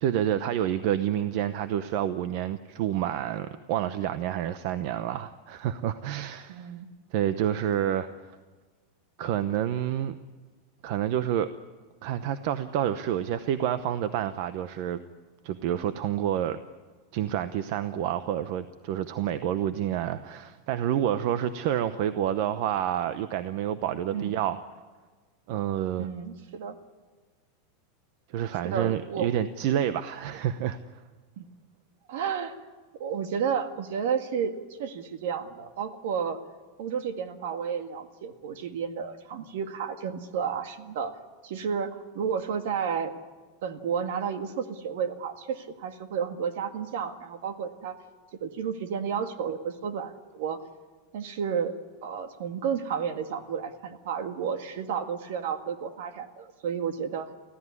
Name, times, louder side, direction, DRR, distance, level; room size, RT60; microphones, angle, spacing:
voice 1, 0.0-6.7 7.1-8.3 9.2-10.1 10.8-11.5 12.0-15.0 15.4-16.6 17.1-24.6 25.5-26.1 28.3-31.0, right 10 dB, 45° right, 12 dB, 0.8 m, -28 dB
voice 2, 6.5-6.9 24.1-24.3 26.0-26.8 28.6-29.3 31.4-31.5 32.1-32.6 33.0-36.4 36.8-41.1 41.4-43.1 43.6-48.0 48.4-50.6 51.1-51.7 52.0-57.3, right 7 dB, 65° right, 7 dB, 1.9 m, -31 dB
24.5 x 15.5 x 9.8 m, 1.4 s
supercardioid pair, 170°, 0 cm